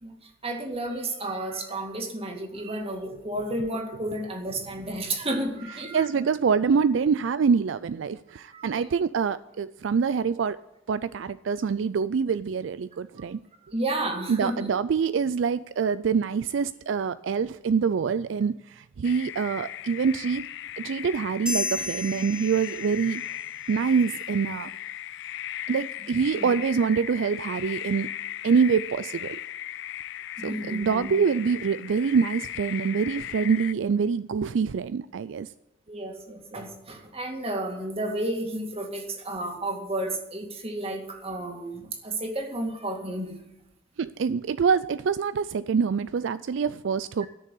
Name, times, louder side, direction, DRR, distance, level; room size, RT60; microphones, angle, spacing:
voice 1, 0.0-6.1 8.5-8.9 13.7-14.7 26.3-26.5 30.4-31.1 35.9-43.3, right 1 dB, 30° right, 3 dB, 2.2 m, -32 dB
voice 2, 5.9-10.6 10.9-13.4 14.3-20.5 20.8-23.2 23.7-24.7 25.7-28.1 28.4-29.4 30.4-35.5 44.0-47.3, right 6 dB, 70° right, 15 dB, 0.4 m, -25 dB
sound 1, 19.0-33.7, left 12 dB, 65° left, 0.4 m, -37 dB
sound 2, 21.5-23.3, left 2 dB, 5° right, 1.3 m, -33 dB
13.5 x 6.6 x 9.9 m, 0.95 s
head